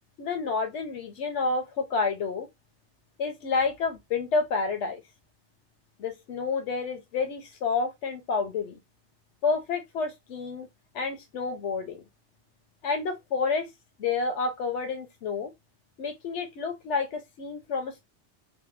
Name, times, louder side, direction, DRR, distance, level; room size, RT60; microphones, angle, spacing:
voice 1, 0.2-2.5 3.2-5.0 6.0-8.8 9.4-10.7 10.9-12.0 12.8-13.7 14.0-15.5 16.0-18.1, left 4 dB, 90° left, 1.0 m, -29 dB
2.8 x 2.1 x 3.1 m
omnidirectional pair, 1.2 m